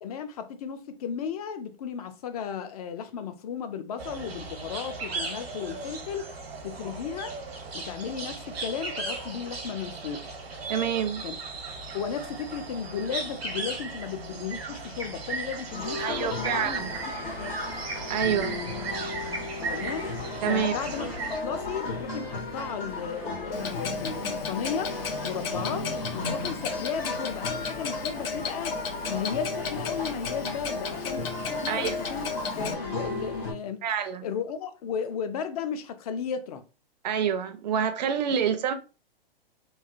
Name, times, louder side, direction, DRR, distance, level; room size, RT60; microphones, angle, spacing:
voice 1, 0.0-6.3 6.6-7.4 7.7-10.3 11.2-11.4 11.9-16.9 17.4-17.7 19.7-20.1 20.5-24.9 25.2-28.8 29.1-33.8 34.2-36.6 38.5-38.6, left 7 dB, 40° left, 0.4 m, -35 dB
sound 1, 4.0-21.4, right 3 dB, 85° right, 1.0 m, -36 dB
voice 2, 10.7-11.2 16.0-16.9 18.1-18.6 20.4-20.7 31.7-32.0 33.8-34.3 37.0-38.7, right 8 dB, 45° right, 0.5 m, -27 dB
sound 2, 15.7-33.5, left 2 dB, 85° left, 1.3 m, -36 dB
Clock, 23.5-32.7, left 4 dB, 70° left, 0.8 m, -34 dB
3.1 x 2.3 x 2.5 m
hypercardioid pair, 135°, 30 cm